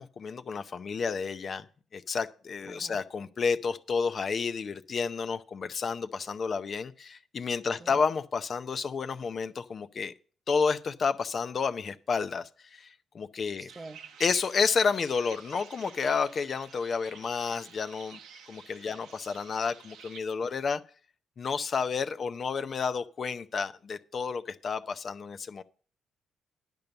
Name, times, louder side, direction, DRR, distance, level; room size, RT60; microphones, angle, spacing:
voice 1, 0.0-1.7 1.9-10.1 10.5-13.7 14.2-18.2 18.5-20.8 21.4-25.6, left 5 dB, 45° left, 0.6 m, -30 dB
voice 2, 2.7-3.0 7.8-8.0 13.6-14.1, right 3 dB, 25° right, 0.6 m, -47 dB
sound 1, 13.7-20.2, right 7 dB, 85° right, 0.9 m, -50 dB
10.5 x 5.3 x 6.9 m
cardioid pair, 90°, 0 cm